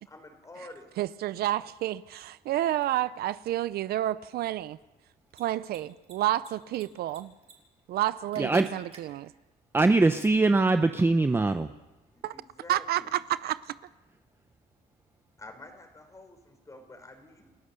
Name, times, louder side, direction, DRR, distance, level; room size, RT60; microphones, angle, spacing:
voice 1, 0.1-0.9 12.1-13.2 15.4-17.5, left 2 dB, 20° left, 4.3 m, -48 dB
voice 2, 1.0-4.8 5.3-7.3 7.9-9.3 12.2-12.3 12.7-13.8, right 13 dB, 65° right, 0.6 m, -30 dB
Mechanisms, 2.8-2.9 5.2-5.4 5.7-5.8 6.0-6.8 7.1-7.5 7.8-7.9 8.3-9.0, right 5 dB, 35° right, 4.8 m, -52 dB
voice 3, 9.7-11.7, right 3 dB, 15° right, 0.7 m, -22 dB
29.5 x 14.0 x 6.8 m
cardioid pair, 110°, 17 cm